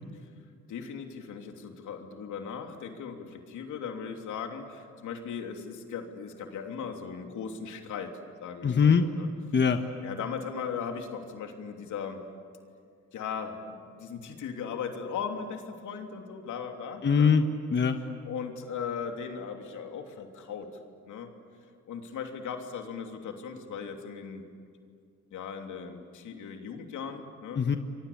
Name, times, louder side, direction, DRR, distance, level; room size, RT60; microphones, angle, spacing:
voice 1, 0.7-8.1 8.4-9.3 10.0-12.2 13.1-17.4 18.2-20.7 21.1-21.3 21.9-24.4 25.3-27.6, left 6 dB, 75° left, 4 dB, 3.2 m, -38 dB
voice 2, 8.6-9.0 9.5-9.8 17.0-18.0 27.6-27.8, left 6 dB, 35° left, 7 dB, 1.3 m, -22 dB
29.0 x 23.5 x 8.6 m, 2.3 s
cardioid pair, 90°, 30 cm